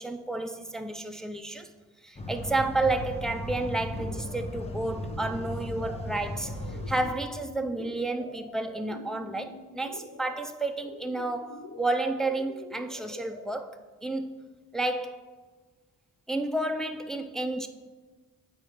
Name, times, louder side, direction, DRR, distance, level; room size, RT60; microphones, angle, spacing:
voice 1, 0.0-1.7 2.0-14.3 14.7-15.2 16.3-17.7, right 2 dB, ahead, 0.5 m, -31 dB
sound 1, 2.2-7.1, left 1 dB, 15° left, 0.9 m, -36 dB
sound 2, 3.9-13.4, left 3 dB, 80° left, 1.0 m, -46 dB
8.0 x 4.3 x 5.0 m
cardioid pair, 70°, 36 cm